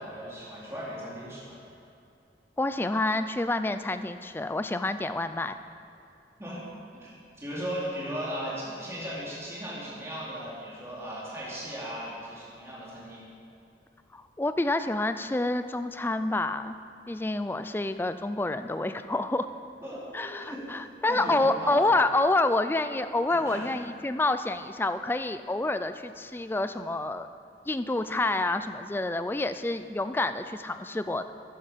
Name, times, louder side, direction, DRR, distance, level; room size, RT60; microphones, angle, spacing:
voice 1, 0.0-1.6 6.4-6.6 7.0-13.3 19.8-20.8 21.1-21.9 23.3-23.7, equal, 15° right, -7 dB, 2.9 m, -37 dB
voice 2, 2.6-5.6 14.1-16.8 17.1-19.5 20.1-27.3 27.7-31.3, left 2 dB, 10° left, 10 dB, 0.3 m, -28 dB
12.5 x 9.9 x 5.1 m, 2.6 s
head